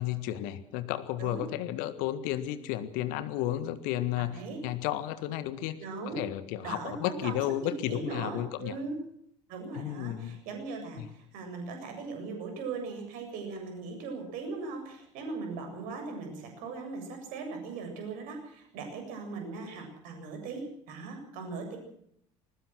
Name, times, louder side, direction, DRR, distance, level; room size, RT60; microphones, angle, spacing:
voice 1, 0.0-5.8 6.1-8.8 9.7-10.4 11.0-11.1, left 13 dB, 55° left, 13 dB, 1.7 m, -33 dB
voice 2, 5.8-6.2 6.6-9.0 9.5-21.8, right 4 dB, 55° right, 5 dB, 7.5 m, -39 dB
21.5 x 20.0 x 6.3 m, 0.70 s
figure-of-eight pair, 65°, 17 cm